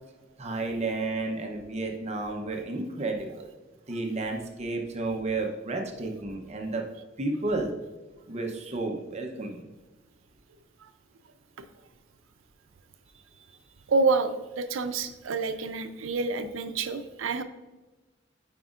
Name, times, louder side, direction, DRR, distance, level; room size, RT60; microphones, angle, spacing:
voice 1, 0.4-3.5 3.9-6.8 7.2-7.7 8.3-9.6 13.5-13.6, right 2 dB, 35° right, 2 dB, 0.7 m, -32 dB
voice 2, 13.9-17.4, right 3 dB, 85° right, 10 dB, 0.5 m, -28 dB
8.8 x 5.1 x 2.4 m, 1.2 s
head